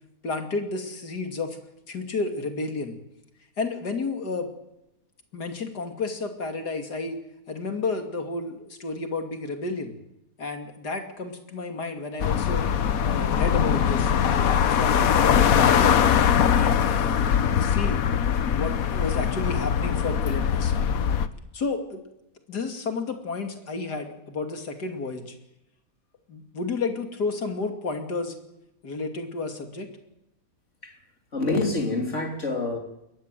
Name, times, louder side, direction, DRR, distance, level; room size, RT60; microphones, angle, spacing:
voice 1, 0.2-1.6 1.9-3.0 3.6-4.5 5.3-7.2 7.5-9.9 10.4-12.6 13.0-16.0 16.5-17.3 17.6-18.0 18.5-20.7 21.5-22.0 22.5-25.3 26.3-28.3 28.8-29.9, left 3 dB, 85° left, 5 dB, 3.1 m, -31 dB
sound 1, 12.2-21.3, left 8 dB, 65° left, 1.4 m, -22 dB
voice 2, 31.3-32.8, left 2 dB, 45° left, 3 dB, 3.4 m, -26 dB
21.5 x 17.0 x 9.2 m, 0.88 s
omnidirectional pair, 1.7 m